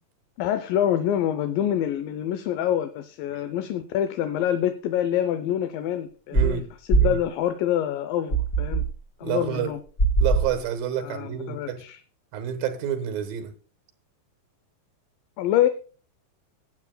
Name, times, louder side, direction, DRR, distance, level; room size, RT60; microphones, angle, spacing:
voice 1, 0.4-6.6 6.9-8.9 9.2-9.8 11.0-12.0 15.4-15.7, left 11 dB, 80° left, 2.3 m, -26 dB
sound 1, 6.3-6.6 6.9-7.2 8.3-8.9 10.0-10.6, right 4 dB, 30° left, 1.9 m, -21 dB
voice 2, 6.3-6.7 7.0-7.2 9.2-9.7 10.2-11.8 12.3-13.5, right 9 dB, 75° right, 2.9 m, -29 dB
21.5 x 8.3 x 2.2 m
omnidirectional pair, 4.2 m